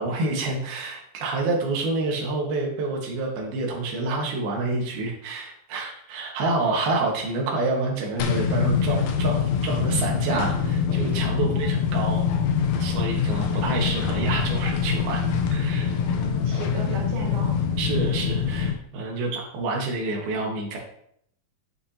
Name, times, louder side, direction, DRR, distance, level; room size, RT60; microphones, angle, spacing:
voice 1, 0.0-12.3 12.8-15.2 15.5-15.9 17.8-20.8, right 3 dB, 85° right, -1 dB, 3.5 m, -28 dB
sound 1, 8.2-18.8, left 6 dB, 90° left, 1.5 m, -24 dB
voice 2, 15.8-17.6, right 2 dB, 40° right, -3 dB, 1.8 m, -37 dB
11.0 x 5.8 x 2.8 m, 0.70 s
omnidirectional pair, 4.2 m